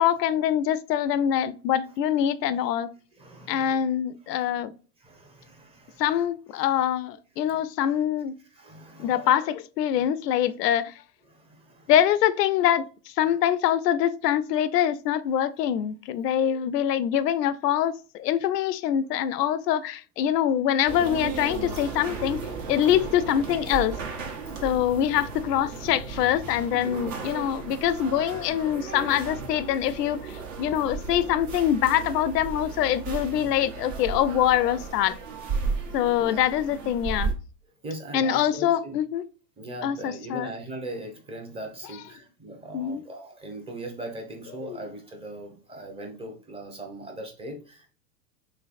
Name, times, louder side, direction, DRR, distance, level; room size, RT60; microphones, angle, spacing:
voice 1, 0.0-2.9 3.5-4.7 6.0-8.3 9.0-10.9 11.9-12.9 13.2-24.0 24.6-35.2 35.9-37.3 38.1-39.3 39.8-40.5 42.7-43.0 44.6-44.8, left 10 dB, 80° left, 0.5 m, -24 dB
voice 2, 3.2-3.8 5.0-6.0 7.5-7.6 8.5-9.3 9.9-10.0 11.3-11.9 24.5-24.6 36.2-36.4 37.8-39.0 39.6-47.9, right 1 dB, 10° right, 0.8 m, -40 dB
sound 1, 20.9-37.3, right 5 dB, 50° right, 1.2 m, -35 dB
3.3 x 3.2 x 2.5 m
hypercardioid pair, 115°, 47 cm